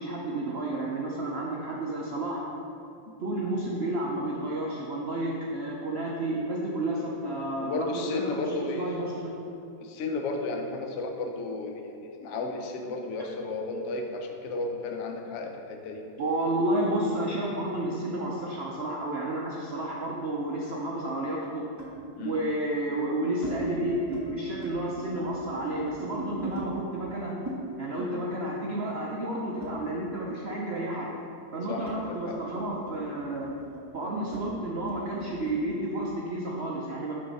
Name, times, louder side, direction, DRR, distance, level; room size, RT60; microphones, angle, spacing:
voice 1, 0.0-2.4 3.2-9.4 16.2-21.6 22.2-27.4 27.8-31.1 31.5-33.5 33.9-37.1, right 1 dB, 85° right, -3 dB, 0.5 m, -31 dB
voice 2, 7.6-9.0 9.8-16.1 22.2-22.4 28.0-28.2 31.7-32.4, left 3 dB, 65° left, 3 dB, 0.7 m, -34 dB
sound 1, 19.8-20.5 21.8-22.0 22.8-23.6 23.9-24.3 24.5-26.7 27.5-30.3 30.6-35.6, right 1 dB, 10° right, 0.8 m, -42 dB
6.7 x 6.2 x 4.1 m, 2.6 s
omnidirectional pair, 2.1 m